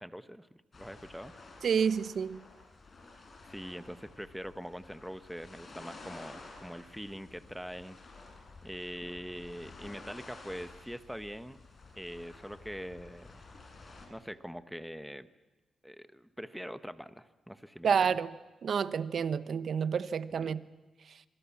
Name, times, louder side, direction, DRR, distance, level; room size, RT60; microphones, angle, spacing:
voice 1, 0.0-1.4 3.5-8.0 8.6-11.6 11.9-13.4 14.1-15.3 15.8-18.2 20.3-20.6, equal, ahead, 1.3 m, -43 dB
sound 1, 0.7-14.1, left 3 dB, 40° left, 7.0 m, -52 dB
voice 2, 1.6-2.4 17.8-18.3 18.6-20.6, right 7 dB, 65° right, 1.1 m, -29 dB
26.5 x 23.5 x 7.4 m
cardioid pair, 75°, 0 cm